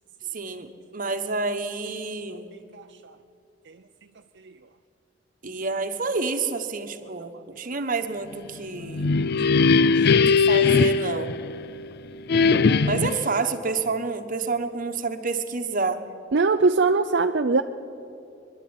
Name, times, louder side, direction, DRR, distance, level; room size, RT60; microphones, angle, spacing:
voice 1, 0.3-2.5 5.4-9.1 10.1-11.4 12.8-16.0, right 4 dB, 45° right, 7 dB, 1.3 m, -29 dB
sound 1, 8.7-11.8 12.3-13.3, left 4 dB, 60° left, 0.5 m, -20 dB
voice 2, 16.3-17.6, right 4 dB, 65° right, 5 dB, 0.6 m, -20 dB
23.0 x 11.5 x 9.7 m, 2.7 s
head